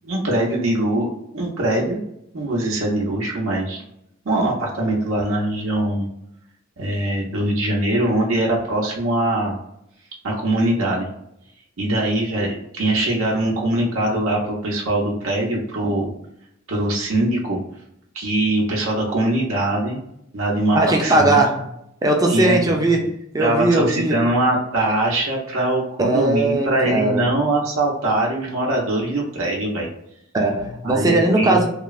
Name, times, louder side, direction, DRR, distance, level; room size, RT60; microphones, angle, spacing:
voice 1, 0.0-2.0 2.3-3.8 4.2-6.1 6.8-9.6 10.2-11.1 11.8-16.1 16.7-17.6 18.1-20.0 20.3-21.4 22.3-22.6 23.4-29.9 30.8-31.7, right 1 dB, 85° right, -3 dB, 0.6 m, -22 dB
voice 2, 20.7-21.7 22.0-24.2 26.0-27.3 30.3-31.7, right 2 dB, 20° right, 1 dB, 0.4 m, -19 dB
3.1 x 2.0 x 2.3 m, 0.79 s
head